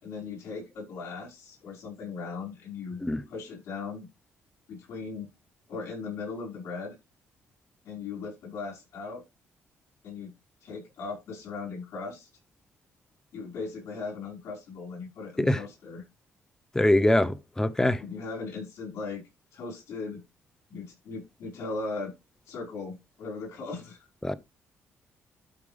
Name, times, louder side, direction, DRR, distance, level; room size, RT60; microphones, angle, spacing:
voice 1, 0.0-3.0 3.3-4.1 4.7-5.3 5.7-7.0 7.8-9.2 10.0-10.3 10.6-12.3 13.3-16.0 18.0-19.2 19.5-20.2 20.7-22.1 22.5-24.1, left 4 dB, 75° left, 5.6 m, -38 dB
voice 2, 16.7-18.0 24.2-24.3, left 1 dB, 10° left, 0.8 m, -23 dB
12.5 x 5.1 x 3.4 m
cardioid pair, 95°, 5 cm